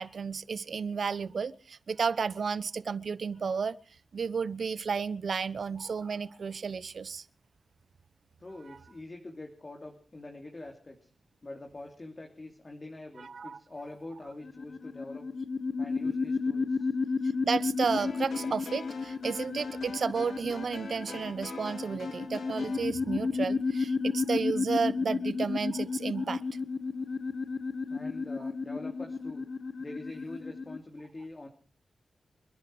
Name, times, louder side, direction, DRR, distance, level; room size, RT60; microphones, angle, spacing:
voice 1, 0.0-3.8 4.1-7.2 13.2-13.6 17.4-26.4, right 5 dB, 70° right, 0.9 m, -32 dB
voice 2, 8.4-11.1 11.4-15.3 15.8-16.9 27.9-29.4 29.8-31.5, left 2 dB, 35° left, 2.9 m, -44 dB
sound 1, 14.4-30.8, left 4 dB, 60° left, 0.8 m, -32 dB
sound 2, 18.0-22.9, left 4 dB, 80° left, 2.6 m, -45 dB
28.0 x 10.5 x 4.8 m
cardioid pair, 55°, 0 cm